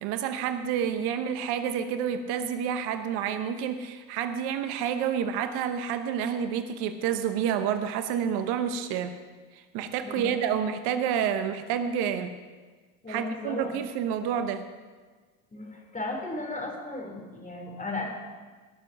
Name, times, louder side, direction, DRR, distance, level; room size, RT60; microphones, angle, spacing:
voice 1, 0.0-9.1 9.5-12.3 13.1-14.6, right 8 dB, 65° right, 9 dB, 1.0 m, -29 dB
voice 2, 10.0-10.3 13.0-13.7 15.5-18.0, left 2 dB, 20° left, 2 dB, 3.7 m, -35 dB
18.0 x 6.9 x 5.9 m, 1.4 s
hypercardioid pair, 70°, 41 cm